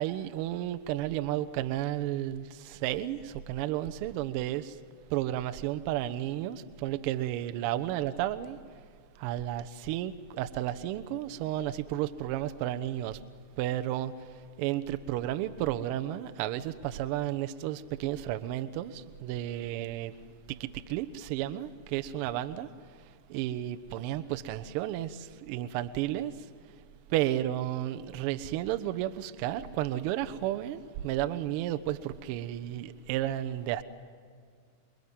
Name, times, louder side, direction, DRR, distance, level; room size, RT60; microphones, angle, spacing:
voice 1, 0.0-4.7 5.1-8.6 9.2-13.2 13.6-14.1 14.6-20.1 20.5-22.7 23.3-26.3 27.1-33.8, right 13 dB, 45° right, 10 dB, 1.1 m, -32 dB
27.5 x 22.5 x 9.6 m, 2.1 s
figure-of-eight pair, 90°, 0 cm